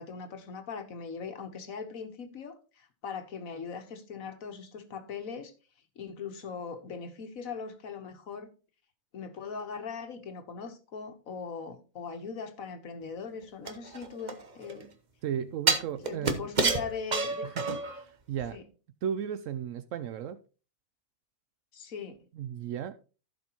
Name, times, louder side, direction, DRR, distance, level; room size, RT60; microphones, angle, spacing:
voice 1, 0.0-5.5 6.0-8.5 9.1-14.9 15.9-17.5 18.5-18.6 21.7-22.2, left 5 dB, 90° left, 1.6 m, -40 dB
sound 1, 13.7-14.8 15.7-18.0 18.4-18.5, right 4 dB, 35° right, 1.0 m, -29 dB
voice 2, 15.2-16.5 17.4-18.6 19.0-20.4 22.3-22.9, right 9 dB, 75° right, 0.9 m, -35 dB
15.5 x 5.2 x 2.9 m
omnidirectional pair, 1.4 m